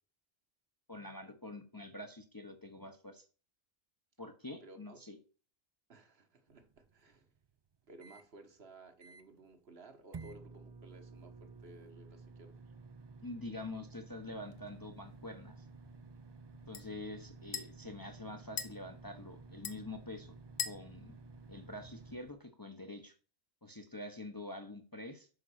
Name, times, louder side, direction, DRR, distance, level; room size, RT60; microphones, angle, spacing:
voice 1, 0.9-3.2 4.2-5.2 13.2-15.6 16.7-20.4 20.6-21.2 21.5-23.1 23.6-25.3, left 2 dB, 25° left, 0.7 m, -46 dB
voice 2, 4.6-5.0 5.9-7.3 7.9-12.6, right 2 dB, 65° right, 1.5 m, -56 dB
sound 1, 6.5-8.3 8.7-8.8 9.0-9.5 10.1-22.2, right 4 dB, 45° right, 0.3 m, -53 dB
sound 2, 14.5-22.3, left 7 dB, 75° left, 1.1 m, -47 dB
6.4 x 5.3 x 6.3 m
omnidirectional pair, 1.1 m